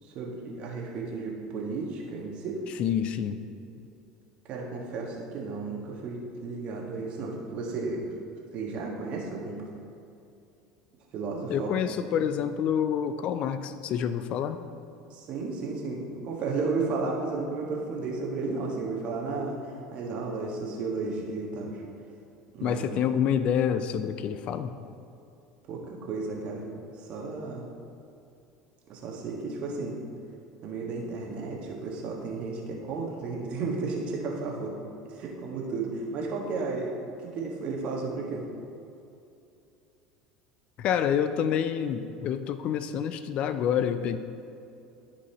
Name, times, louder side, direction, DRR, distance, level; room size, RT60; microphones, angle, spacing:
voice 1, 0.1-2.6 4.5-8.0 8.5-9.6 11.1-11.7 12.0-12.1 15.1-21.8 22.5-23.0 25.7-26.6 27.0-27.6 28.9-30.0 30.6-34.7 35.1-38.4, right 3 dB, 55° right, -1 dB, 1.5 m, -33 dB
voice 2, 2.8-3.4 11.5-14.6 22.6-24.8 40.8-44.2, left 8 dB, 50° left, 11 dB, 0.4 m, -27 dB
13.0 x 4.9 x 3.0 m, 2.6 s
hypercardioid pair, 75°, 2 cm